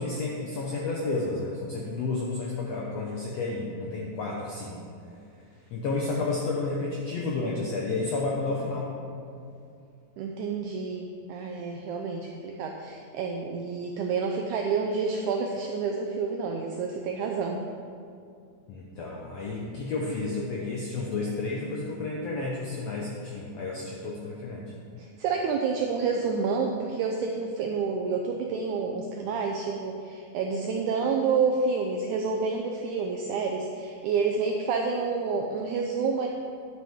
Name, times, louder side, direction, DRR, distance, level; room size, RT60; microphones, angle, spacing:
voice 1, 0.0-4.8 5.7-9.0 18.7-24.7, left 3 dB, 80° left, -3 dB, 1.4 m, -31 dB
voice 2, 10.2-17.6 25.0-36.3, right 5 dB, 85° right, 2 dB, 1.7 m, -29 dB
10.5 x 8.2 x 3.6 m, 2.4 s
omnidirectional pair, 4.1 m